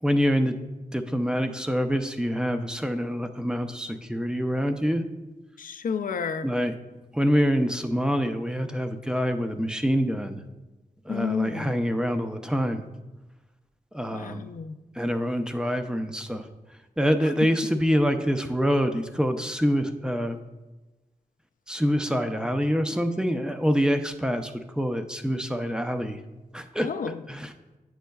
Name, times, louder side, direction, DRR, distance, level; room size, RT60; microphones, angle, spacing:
voice 1, 0.0-0.5 0.9-5.0 6.4-6.7 7.1-10.4 11.1-12.9 13.9-14.5 15.0-16.5 17.0-20.4 21.7-26.2 26.5-26.9 27.3-27.5, equal, 5° right, 7 dB, 0.5 m, -26 dB
voice 2, 5.6-6.5 11.1-11.7 14.1-14.8 17.2-17.5 26.8-27.2, left 6 dB, 65° left, 10 dB, 0.4 m, -31 dB
9.3 x 6.3 x 2.3 m, 1.1 s
cardioid pair, 65°, 15 cm